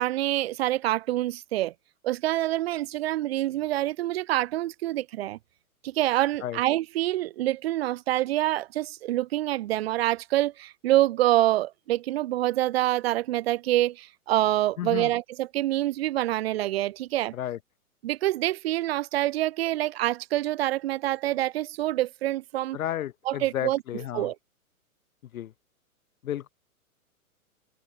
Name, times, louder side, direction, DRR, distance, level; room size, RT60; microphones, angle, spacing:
voice 1, 0.0-1.7 2.0-5.4 5.8-17.3 18.0-22.8 23.3-23.8 24.1-24.3, right 15 dB, 45° right, 0.4 m, -26 dB
voice 2, 14.8-15.1 17.3-17.6 22.7-24.3 25.3-25.5 26.2-26.5, left 11 dB, 70° left, 0.7 m, -32 dB
hypercardioid pair, 120°, 43 cm